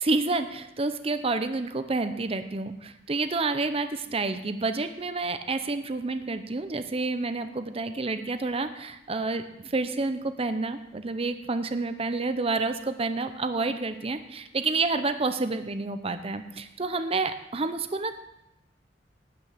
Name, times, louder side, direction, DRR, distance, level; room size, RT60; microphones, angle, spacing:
voice 1, 0.0-18.2, right 3 dB, 35° right, 10 dB, 0.7 m, -29 dB
12.5 x 5.2 x 8.7 m, 0.85 s
head